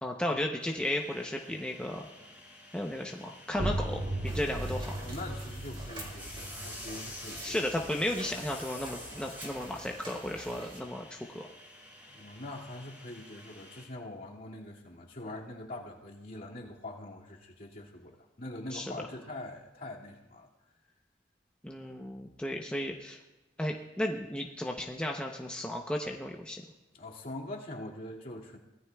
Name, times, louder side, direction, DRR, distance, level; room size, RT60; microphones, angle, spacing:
voice 1, 0.0-2.1 2.7-4.9 7.4-11.5 18.7-18.9 21.6-23.2 23.6-26.6, left 1 dB, 5° left, 0 dB, 0.7 m, -34 dB
sound 1, 0.6-13.8, left 1 dB, 10° right, 4.5 m, -49 dB
sound 2, 3.5-9.1, right 1 dB, 50° right, 2.0 m, -37 dB
sound 3, 4.2-10.8, right 1 dB, 30° right, 2.6 m, -47 dB
voice 2, 5.0-7.6 12.1-20.5 26.9-28.6, left 1 dB, 50° left, -3 dB, 2.2 m, -43 dB
24.0 x 17.0 x 2.3 m, 1.1 s
head